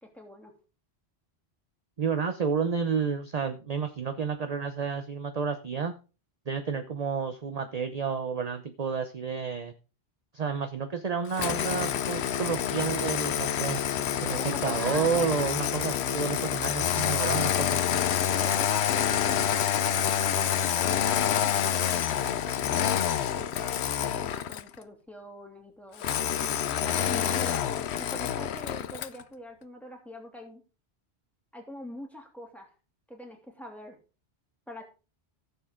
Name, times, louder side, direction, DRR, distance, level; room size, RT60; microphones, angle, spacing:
voice 1, 0.0-0.5 14.3-15.3 15.6-16.1 18.3-30.6 31.5-32.7 33.1-34.0 34.7-34.8, equal, ahead, 1 dB, 2.7 m, -44 dB
voice 2, 2.0-5.9 6.5-9.7 10.3-13.8 14.2-18.0, right 6 dB, 40° right, 8 dB, 0.9 m, -30 dB
Engine starting, 11.3-24.7 26.0-29.2, left 9 dB, 75° left, 0.9 m, -27 dB
15.0 x 7.1 x 3.7 m, 0.33 s
omnidirectional pair, 1.1 m